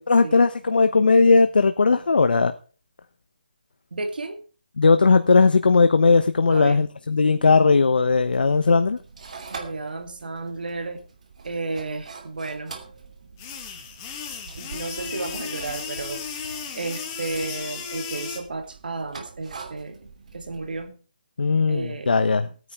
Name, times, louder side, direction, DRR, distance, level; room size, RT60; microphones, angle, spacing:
voice 1, 0.0-2.5 4.8-9.0 21.4-22.5, left 4 dB, 80° left, 9 dB, 1.0 m, -18 dB
voice 2, 3.9-4.4 6.5-6.9 9.5-11.0 11.4-12.8 14.6-21.0 21.7-22.4, right 3 dB, 75° right, 7 dB, 2.5 m, -33 dB
sound 1, 8.1-20.8, right 5 dB, 50° right, 2.7 m, -44 dB
sound 2, 13.4-18.4, left 6 dB, 15° left, 1.8 m, -35 dB
17.5 x 9.6 x 4.5 m, 0.38 s
hypercardioid pair, 170°, 5 cm